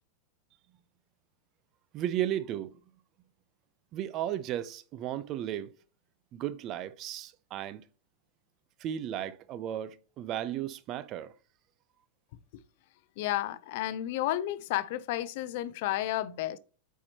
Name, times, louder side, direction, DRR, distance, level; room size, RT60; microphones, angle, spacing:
voice 1, 1.9-2.8 3.9-5.7 6.3-7.8 8.8-11.3, right 11 dB, 40° right, 0.6 m, -34 dB
voice 2, 13.2-16.6, left 14 dB, 60° left, 0.6 m, -32 dB
8.7 x 4.6 x 2.9 m
hypercardioid pair, 105°, 0 cm